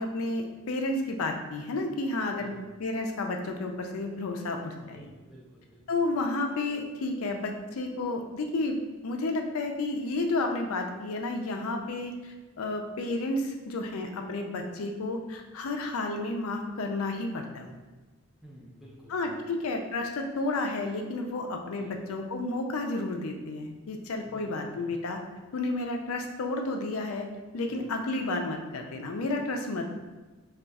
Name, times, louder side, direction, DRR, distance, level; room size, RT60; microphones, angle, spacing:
voice 1, 0.0-2.5 2.8-5.0 5.9-8.8 9.0-17.7 19.1-25.2 25.5-27.3 27.5-29.9, left 2 dB, 75° left, 3 dB, 0.4 m, -31 dB
voice 2, 2.3-2.7 4.8-6.0 18.4-19.5 21.8-21.9 24.2-24.9 27.7-27.9, equal, ahead, -6 dB, 0.5 m, -52 dB
2.3 x 2.3 x 4.0 m, 1.2 s
head